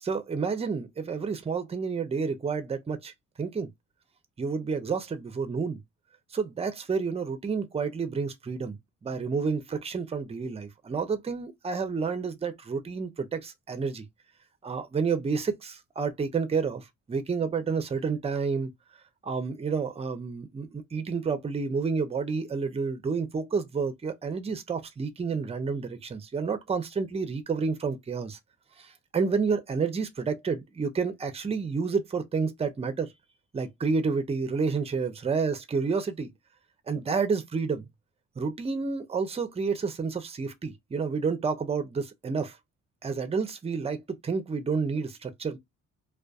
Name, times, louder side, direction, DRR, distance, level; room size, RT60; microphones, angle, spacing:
voice 1, 0.0-3.1 3.4-3.7 4.4-5.8 6.3-14.0 14.6-18.7 19.2-28.4 28.8-33.1 33.5-36.3 36.9-37.9 38.4-42.6 43.0-45.6, right 5 dB, 20° right, 0.5 m, -30 dB
2.4 x 2.3 x 2.3 m
cardioid pair, 90°, 30 cm